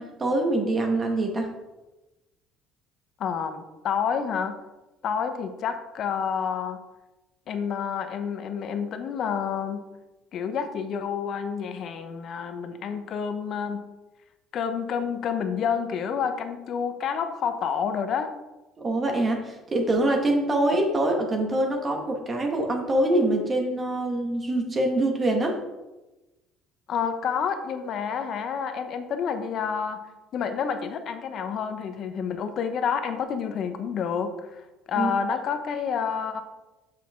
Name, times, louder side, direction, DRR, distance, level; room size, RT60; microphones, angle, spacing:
voice 1, 0.0-1.5 18.8-25.6 35.0-35.1, right 1 dB, 30° right, 2 dB, 1.6 m, -24 dB
voice 2, 3.2-4.5 5.0-6.8 7.5-9.8 10.3-13.9 14.5-18.3 26.9-30.0 30.3-34.6 34.9-36.4, left 7 dB, 55° left, 8 dB, 0.9 m, -29 dB
6.5 x 5.8 x 3.7 m, 1.1 s
supercardioid pair, 95°, 0 cm